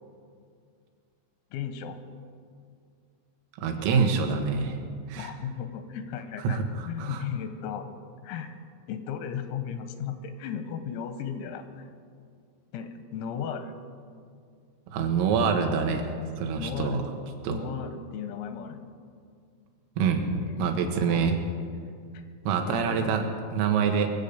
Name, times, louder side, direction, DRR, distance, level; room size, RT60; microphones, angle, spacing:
voice 1, 1.5-2.0 5.2-7.9 8.2-8.6 8.9-11.9 12.7-13.7 16.6-17.1 17.5-18.8 20.4-20.8 21.1-21.4 22.1-22.2 22.7-23.2, left 7 dB, 85° left, 9 dB, 3.7 m, -36 dB
voice 2, 3.6-4.8 5.1-5.3 6.5-7.2 14.9-16.0 16.4-17.0 17.4-17.6 20.0-21.4 22.5-23.3 23.5-24.1, right 6 dB, 80° right, 4 dB, 3.8 m, -26 dB
23.0 x 8.2 x 6.8 m, 2.2 s
omnidirectional pair, 6.0 m